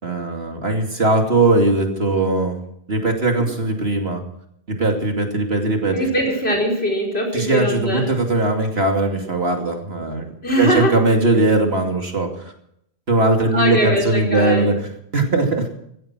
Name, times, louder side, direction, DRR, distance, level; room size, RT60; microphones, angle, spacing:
voice 1, 0.0-2.6 2.9-4.2 4.7-6.0 7.3-10.3 10.6-12.5 13.1-14.7 15.1-15.7, right 2 dB, 65° right, 3 dB, 2.9 m, -19 dB
voice 2, 5.9-8.1 10.4-10.9 13.5-14.7, equal, 70° left, 2 dB, 4.9 m, -21 dB
16.0 x 13.5 x 6.1 m, 0.72 s
omnidirectional pair, 1.1 m